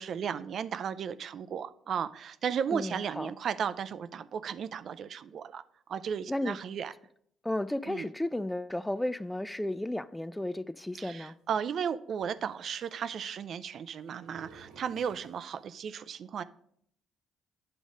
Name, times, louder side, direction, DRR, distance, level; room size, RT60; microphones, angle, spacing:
voice 1, 0.0-5.6 5.9-6.9 7.9-8.1 11.0-16.4, right 7 dB, 60° right, 0.4 m, -35 dB
voice 2, 2.7-3.3 6.3-6.6 7.4-11.3, left 1 dB, 10° left, 0.3 m, -33 dB
sound 1, 9.7-9.9 11.3-11.4 11.5-11.6 12.2-13.3 13.9-15.9, right 4 dB, 85° right, 1.1 m, -56 dB
9.3 x 3.8 x 5.0 m
supercardioid pair, 65°, 0 cm